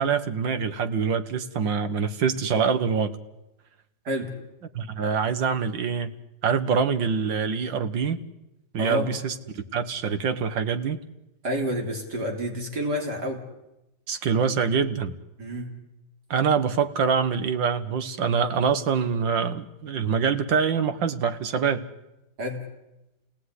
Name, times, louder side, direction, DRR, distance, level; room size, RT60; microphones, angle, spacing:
voice 1, 0.0-3.2 4.8-6.1 6.4-8.2 8.7-11.0 14.1-15.1 16.3-21.8, right 6 dB, 80° right, 10 dB, 2.1 m, -25 dB
voice 2, 11.4-13.4 15.4-15.8 22.4-22.6, equal, 60° right, 2 dB, 3.9 m, -29 dB
28.0 x 18.0 x 9.8 m, 0.95 s
omnidirectional pair, 2.0 m